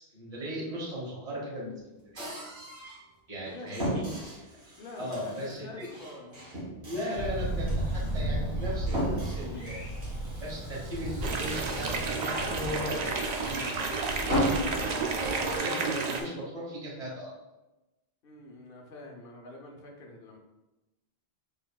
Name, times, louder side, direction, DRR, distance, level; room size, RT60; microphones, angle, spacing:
voice 1, 0.1-2.3 3.3-4.0 5.0-5.9 6.8-9.8 10.4-17.3, equal, 35° right, -6 dB, 1.4 m, -37 dB
sound 1, 2.2-3.0 3.4-12.8 13.2-13.9 14.2-16.3, equal, 75° right, 1.7 m, -37 dB
voice 2, 3.3-3.7 4.8-6.4 18.2-20.4, left 2 dB, 60° left, 2 dB, 0.9 m, -46 dB
Thunder, 7.2-15.6, right 1 dB, 15° left, 1.1 m, -35 dB
sound 2, 11.2-16.2, right 4 dB, 55° right, 0.5 m, -31 dB
5.8 x 3.6 x 2.3 m, 1.0 s
omnidirectional pair, 1.1 m